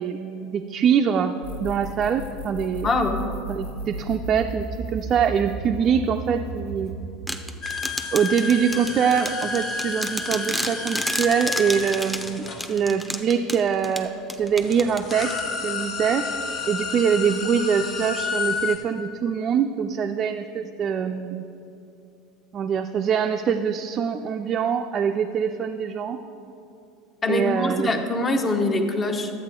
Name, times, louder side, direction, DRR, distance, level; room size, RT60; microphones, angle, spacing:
voice 1, 0.0-1.3 1.6-2.9 3.5-7.1 8.1-14.1 14.4-16.3 16.7-21.4 22.5-26.2 27.3-27.9, right 7 dB, 40° right, 4 dB, 0.4 m, -24 dB
sound 1, 1.4-7.0, right 2 dB, 85° left, 1.0 m, -34 dB
voice 2, 2.8-3.2 27.2-29.3, left 2 dB, 30° left, 5 dB, 0.9 m, -23 dB
sound 2, 7.3-15.7, equal, 5° left, 0.7 m, -32 dB
sound 3, 7.6-13.3 14.2-14.3 14.6-18.8, left 4 dB, 50° left, 1.3 m, -31 dB
12.0 x 8.1 x 3.7 m, 2.6 s
hypercardioid pair, 80°, 0 cm